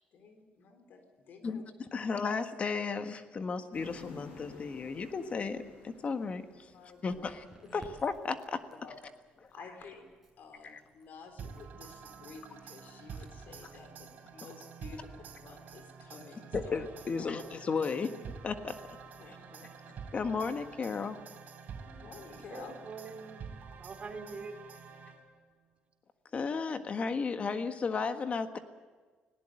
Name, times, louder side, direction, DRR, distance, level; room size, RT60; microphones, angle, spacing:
voice 1, 0.1-1.7 6.7-7.3 7.6-8.0 8.7-8.9 9.5-10.1 10.4-16.8 17.1-17.5 19.2-20.0 21.9-22.7, left 5 dB, 70° left, 6 dB, 3.9 m, -51 dB
voice 2, 1.4-6.7 7.0-7.4 7.7-8.6 10.6-10.8 16.5-18.2 18.4-18.8 20.1-21.2 26.3-28.6, left 5 dB, 40° left, 8 dB, 1.6 m, -34 dB
sound 1, 3.7-8.0, left 3 dB, 85° left, 6.1 m, -53 dB
Crackle, 7.0-13.7, right 1 dB, 10° right, 6.8 m, -59 dB
sound 2, 11.4-25.5, right 6 dB, 65° right, 3.3 m, -48 dB
voice 3, 22.5-23.4 23.7-24.6, right 4 dB, 40° right, 4 dB, 3.5 m, -43 dB
19.5 x 18.0 x 9.0 m, 1.4 s
cardioid pair, 95°, 3 cm